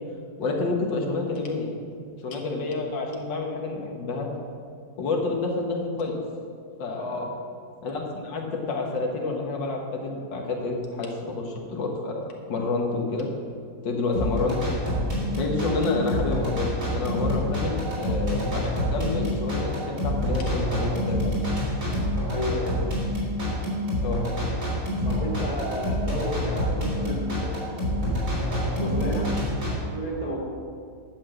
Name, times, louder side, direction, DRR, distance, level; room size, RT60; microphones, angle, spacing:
voice 1, 0.4-1.7 2.2-4.3 5.0-6.2 6.8-7.3 7.8-13.3 13.8-14.6 15.3-21.4 24.0-24.2, left 3 dB, 85° left, 0 dB, 2.1 m, -29 dB
sound 1, 14.1-29.7, left 1 dB, 45° right, 3.8 m, -27 dB
voice 2, 22.3-22.9 25.0-28.0 28.7-29.3 29.9-30.4, equal, 20° left, -2 dB, 2.0 m, -32 dB
11.0 x 6.2 x 7.7 m, 2.2 s
omnidirectional pair, 1.9 m